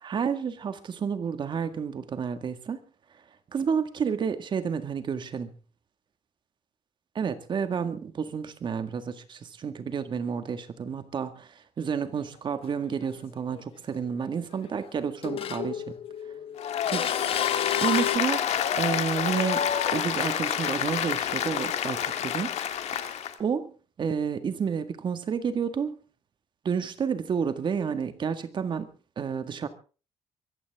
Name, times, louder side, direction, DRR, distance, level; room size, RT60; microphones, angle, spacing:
voice 1, 0.0-2.8 3.5-5.5 7.2-16.0 16.9-17.2 17.5-18.4 18.8-22.5 22.9-23.0 23.4-25.9 26.6-29.7, right 6 dB, 40° right, 1.8 m, -30 dB
sound 1, 12.2-12.3 13.5-13.6 14.1-14.9 15.2-18.2, left 10 dB, 50° left, 1.1 m, -32 dB
Applause, 16.6-23.3, left 9 dB, 65° left, 1.7 m, -28 dB
23.0 x 15.0 x 3.6 m
cardioid pair, 145°, 12 cm